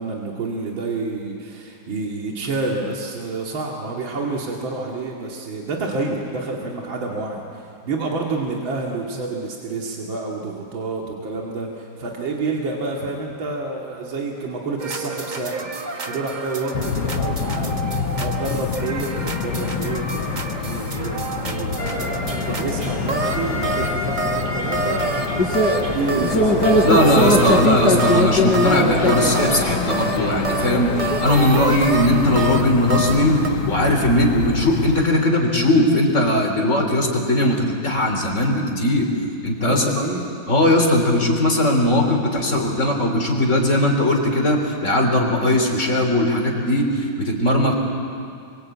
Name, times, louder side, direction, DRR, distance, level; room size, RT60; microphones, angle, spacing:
voice 1, 0.0-15.7 16.0-17.8 18.2-22.2 22.6-25.2 25.8-26.8 27.3-27.6 39.6-40.4, right 3 dB, 80° right, -1 dB, 3.0 m, -28 dB
sound 1, 14.8-33.5, right 3 dB, 30° right, 1.1 m, -28 dB
sound 2, 16.7-35.1, left 7 dB, 90° left, 1.7 m, -28 dB
sound 3, 21.8-31.2, left 1 dB, 55° left, 4.5 m, -22 dB
voice 2, 26.8-39.1 39.4-40.0 40.5-47.7, left 1 dB, 35° left, 2 dB, 3.8 m, -19 dB
27.0 x 23.5 x 8.6 m, 2.4 s
omnidirectional pair, 2.1 m